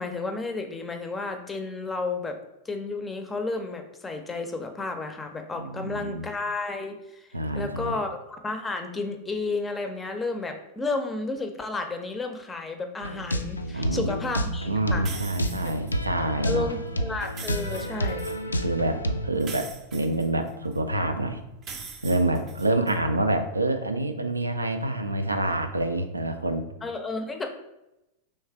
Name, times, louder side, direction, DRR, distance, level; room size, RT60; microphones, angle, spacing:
voice 1, 0.0-2.4 2.6-7.3 7.5-15.1 16.4-18.3 26.8-27.5, left 3 dB, 15° left, 5 dB, 0.6 m, -32 dB
voice 2, 5.6-6.3 7.3-8.0 13.7-14.1 14.7-16.7 18.5-21.4 22.0-26.6, right 1 dB, 80° right, 7 dB, 0.4 m, -27 dB
sound 1, 13.0-19.3, equal, 80° left, 0.3 m, -30 dB
sound 2, 15.1-15.9 17.2-18.4 19.4-20.8 21.6-23.0, right 5 dB, 30° right, 0.6 m, -42 dB
3.2 x 3.2 x 4.5 m, 0.91 s
figure-of-eight pair, 90°, 0 cm